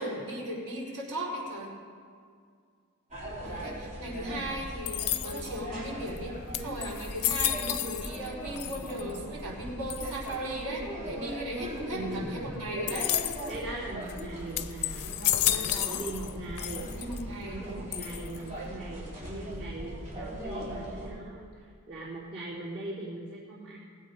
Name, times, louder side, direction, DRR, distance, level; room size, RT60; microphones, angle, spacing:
voice 1, 0.0-1.7 3.4-13.1 15.4-16.0 17.0-17.6, right 1 dB, 70° right, -6 dB, 4.2 m, -37 dB
sound 1, 3.1-21.1, equal, 35° right, 3.7 m, -39 dB
voice 2, 4.0-4.6 11.9-12.3 13.5-15.1 15.4-16.9 17.4-23.8, right 2 dB, 90° right, -10 dB, 3.0 m, -40 dB
sound 2, 4.9-5.6 6.2-6.3 6.5-8.3 8.6-9.2 9.9-10.3 12.9-13.6 14.1-14.2 14.6-16.3 16.6-17.2 17.9-18.5, left 13 dB, 80° left, 0.6 m, -31 dB
19.0 x 8.3 x 5.2 m, 2.2 s
head